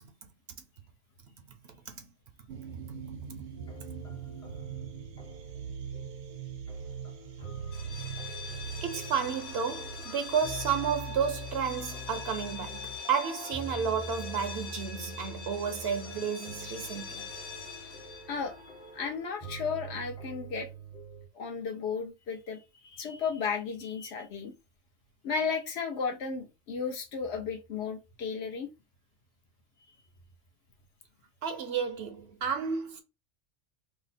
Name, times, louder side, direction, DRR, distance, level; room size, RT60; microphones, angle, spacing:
sound 1, 2.5-11.1, right 7 dB, 90° right, 1.0 m, -42 dB
sound 2, 3.6-21.3, right 2 dB, 35° left, 0.8 m, -45 dB
sound 3, 7.6-19.3, left 5 dB, 90° left, 1.2 m, -44 dB
voice 1, 8.8-17.3 31.4-33.0, right 7 dB, 65° right, 0.7 m, -32 dB
voice 2, 18.3-20.7 21.3-24.5 25.2-28.7, left 5 dB, 65° left, 0.9 m, -34 dB
2.9 x 2.0 x 4.0 m
omnidirectional pair, 1.3 m